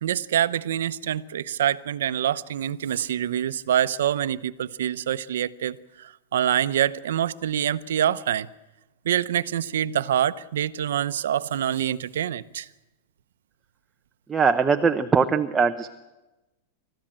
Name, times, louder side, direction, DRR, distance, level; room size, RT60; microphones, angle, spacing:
voice 1, 0.0-8.5 9.0-12.7, right 10 dB, 85° right, 0.8 m, -26 dB
voice 2, 14.3-15.9, right 5 dB, 10° right, 0.8 m, -21 dB
28.5 x 14.5 x 8.9 m
supercardioid pair, 155°, 0 cm